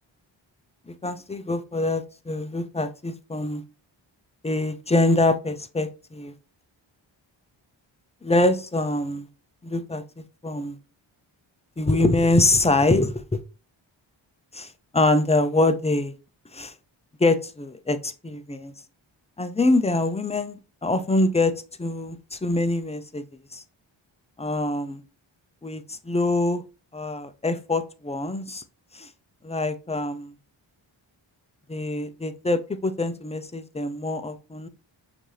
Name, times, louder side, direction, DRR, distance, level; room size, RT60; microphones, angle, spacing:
voice 1, 0.9-3.6 4.4-6.3 8.2-9.3 9.6-10.8 11.8-13.2 14.5-14.7 14.9-16.1 16.5-16.7 17.2-18.7 19.4-21.5 21.8-23.2 23.5-23.6 24.4-25.0 25.6-26.6 26.9-28.6 28.9-29.1 29.4-30.3 31.7-34.7, left 2 dB, 15° left, 0.5 m, -24 dB
5.8 x 2.8 x 3.3 m
cardioid pair, 50°, 49 cm